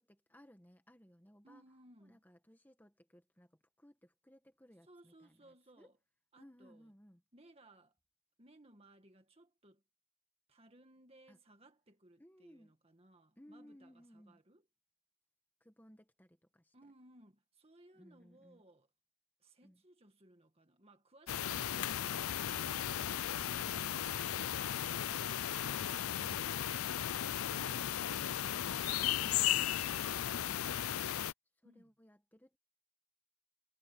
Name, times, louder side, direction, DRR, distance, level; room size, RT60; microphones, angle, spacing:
voice 1, 0.0-1.6 2.0-5.9 6.4-7.2 11.3-11.4 12.2-12.7 13.4-14.4 15.6-16.7 17.9-18.6 19.6-19.8 31.6-32.6, equal, 10° left, 1.7 m, -62 dB
voice 2, 1.4-2.2 4.8-6.0 6.3-6.9 7.3-7.9 8.4-9.8 10.5-14.6 16.7-18.9 19.4-25.9 26.2-27.0 28.9-29.5 31.6-31.9, right 1 dB, 25° right, 1.8 m, -63 dB
sound 1, 21.3-31.3, left 11 dB, 85° left, 0.5 m, -35 dB
head